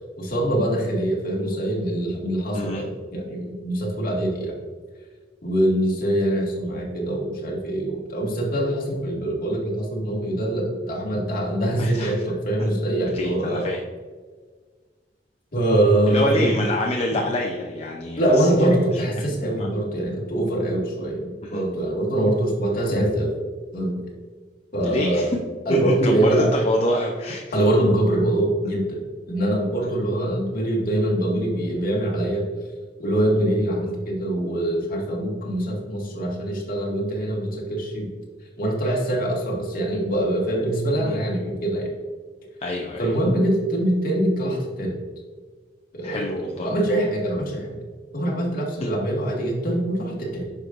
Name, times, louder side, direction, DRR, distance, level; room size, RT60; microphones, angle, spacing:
voice 1, 0.2-4.6 5.4-13.7 15.5-16.5 18.2-23.3 23.7-24.0 24.7-25.3 25.7-26.5 27.5-29.0 29.3-32.5 33.0-38.1 38.6-41.9 43.0-45.0 45.9-47.8 48.1-50.5, right 1 dB, 55° left, -3 dB, 2.0 m, -23 dB
voice 2, 11.8-12.1 13.1-13.8 16.1-18.7 19.2-19.7 21.4-21.6 24.8-25.4 25.7-27.4 41.0-41.1 42.6-43.1 46.0-46.7, left 1 dB, 35° left, 0 dB, 0.6 m, -27 dB
9.7 x 6.0 x 2.6 m, 1.5 s
head